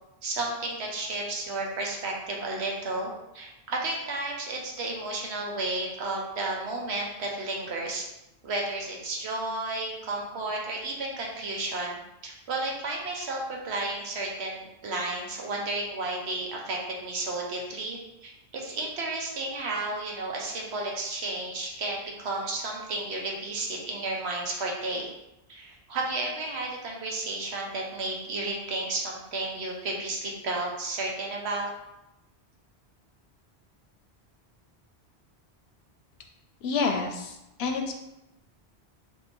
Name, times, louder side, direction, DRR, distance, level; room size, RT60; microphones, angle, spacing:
voice 1, 0.2-8.1 8.4-12.0 12.2-25.1 25.5-31.7, right 2 dB, 80° right, -1 dB, 1.0 m, -32 dB
voice 2, 36.6-37.9, left 4 dB, 75° left, 4 dB, 0.8 m, -28 dB
2.8 x 2.7 x 4.3 m, 0.90 s
omnidirectional pair, 1.1 m